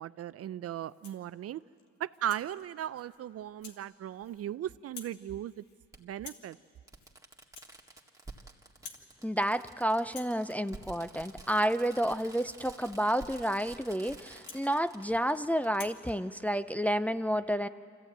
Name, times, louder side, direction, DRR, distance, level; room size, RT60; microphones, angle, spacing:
voice 1, 0.0-1.6 2.0-5.6 6.0-6.6, right 11 dB, 55° right, 16 dB, 0.5 m, -37 dB
Rattle (instrument), 0.8-1.3 1.8-2.5 3.0-3.2 3.6-3.8 4.1-4.5 4.8-5.2 5.5-5.8 6.2-6.5 6.9-7.1 7.4-8.4 8.7-9.1 9.4-9.7 10.0-15.3 15.7-16.0, left 5 dB, 75° left, 1.8 m, -52 dB
Fireworks, 2.6-2.7 4.2-4.3 5.9-6.0 6.5-6.6 6.9-15.8 16.1-16.2, right 3 dB, 10° right, 1.8 m, -50 dB
voice 2, 9.2-17.7, equal, 5° left, 10 dB, 0.4 m, -30 dB
25.0 x 15.0 x 8.8 m, 2.4 s
cardioid pair, 90°, 30 cm